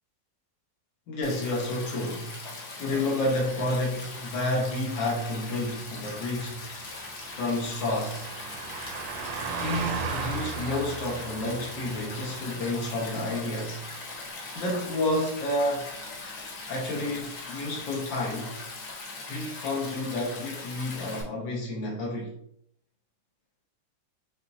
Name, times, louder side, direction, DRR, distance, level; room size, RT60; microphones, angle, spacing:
voice 1, 1.1-2.4 2.8-6.7 7.3-8.3 9.5-13.8 14.5-15.9 16.7-18.6 19.3-22.3, left 1 dB, 90° left, 1.7 m, -30 dB
Stream, 1.2-21.2, left 3 dB, 65° left, 1.5 m, -40 dB
Car passing by, 3.7-15.6 15.9-16.1, right 5 dB, 85° right, 1.3 m, -39 dB
6.9 x 2.4 x 2.7 m
omnidirectional pair, 2.0 m